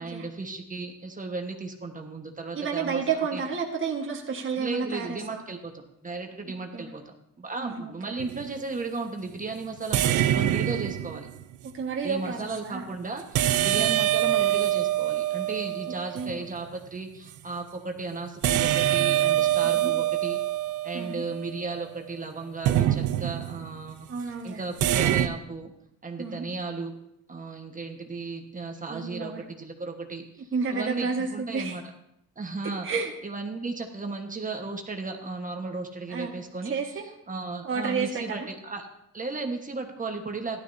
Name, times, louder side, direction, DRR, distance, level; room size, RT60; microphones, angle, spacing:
voice 1, 0.0-3.4 4.6-11.3 12.0-20.4 20.8-25.7 26.0-26.9 27.3-31.8 32.4-32.9 33.2-36.7 37.3-38.9 39.1-40.6, right 3 dB, 25° right, 3 dB, 1.3 m, -35 dB
voice 2, 2.5-5.4 6.7-6.9 7.6-8.2 11.6-12.9 13.7-14.0 16.1-16.4 19.6-19.9 20.9-21.2 24.1-24.6 26.2-26.5 28.9-29.4 30.5-31.8 32.8-33.1 36.1-36.4 36.7-37.0 37.6-38.5, right 5 dB, 40° right, -1 dB, 1.5 m, -31 dB
sound 1, 8.2-8.5 9.9-11.4 13.3-16.4 18.4-21.8 22.6-23.7 24.8-25.3, right 13 dB, 75° right, 0.6 m, -25 dB
14.5 x 12.0 x 2.7 m, 0.79 s
cardioid pair, 90°, 30 cm